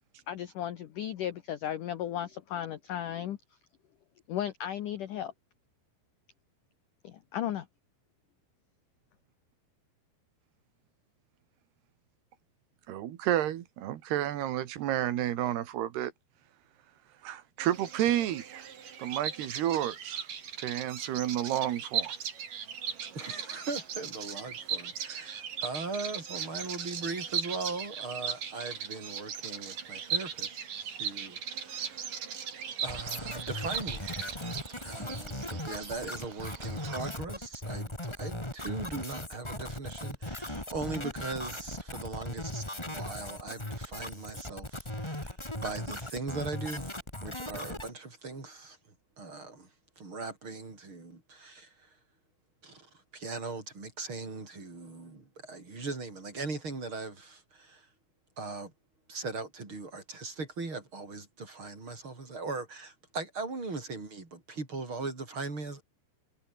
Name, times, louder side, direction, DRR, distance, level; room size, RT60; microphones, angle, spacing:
voice 1, 0.3-3.4 4.3-5.3 7.0-7.7, left 11 dB, 65° left, 2.2 m, -35 dB
voice 2, 12.9-16.1 17.2-18.7 19.0-20.3 20.6-22.1, right 12 dB, 70° right, 3.5 m, -31 dB
Bird vocalization bird call bird song, 17.6-37.1, right 7 dB, 50° right, 4.1 m, -38 dB
voice 3, 23.1-32.2 32.8-34.3 34.8-47.0 47.2-48.8 49.2-49.7 50.0-52.0 52.6-57.9 58.4-58.7 59.1-65.8, right 3 dB, 25° right, 6.1 m, -39 dB
sound 1, 32.9-47.9, left 1 dB, 10° left, 2.2 m, -38 dB
omnidirectional pair, 5.2 m